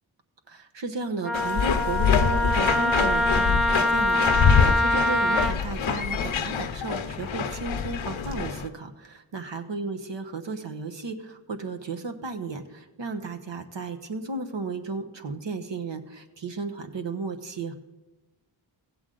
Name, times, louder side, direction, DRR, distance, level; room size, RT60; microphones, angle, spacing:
voice 1, 0.5-17.7, right 3 dB, 65° right, 6 dB, 1.1 m, -34 dB
Wind instrument woodwind instrument, 1.2-5.5, left 1 dB, ahead, 0.8 m, -24 dB
sound 1, 1.3-8.7, left 6 dB, 85° left, 0.8 m, -25 dB
15.5 x 8.1 x 3.8 m, 1.1 s
cardioid pair, 60°, 47 cm